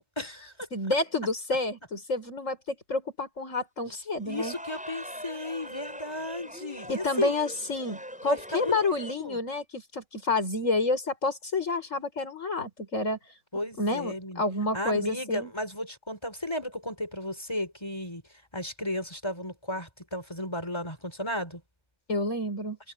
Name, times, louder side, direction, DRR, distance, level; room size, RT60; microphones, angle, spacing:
voice 1, 0.0-0.7 3.9-4.0 4.2-7.4 8.3-8.8 9.2-9.4 13.5-14.4 14.7-18.2 18.5-21.6, left 1 dB, 20° left, 4.7 m, -34 dB
voice 2, 0.7-4.5 6.9-13.2 13.8-15.5 22.1-22.8, left 2 dB, 75° left, 5.8 m, -29 dB
sound 1, 4.1-9.1, equal, 5° right, 7.5 m, -42 dB
omnidirectional pair, 1.3 m